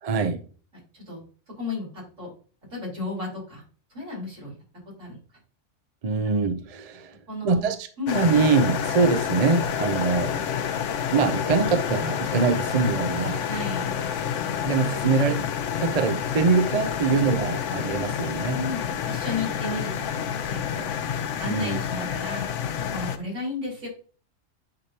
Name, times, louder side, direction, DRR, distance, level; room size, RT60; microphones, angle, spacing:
voice 1, 0.0-0.4 6.0-7.2 7.4-7.9 8.1-10.3 11.1-13.5 14.6-15.5 15.8-18.7 21.4-21.8, right 4 dB, 40° right, 0.6 m, -23 dB
voice 2, 1.6-2.3 2.7-3.6 3.9-4.5 5.0-5.2 7.3-7.7 8.0-8.2 13.5-13.9 18.5-20.9 21.4-22.5 22.8-23.9, left 2 dB, 80° right, 4.6 m, -33 dB
sound 1, 8.1-23.2, left 8 dB, 75° left, 1.0 m, -29 dB
9.8 x 4.9 x 2.9 m
omnidirectional pair, 1.3 m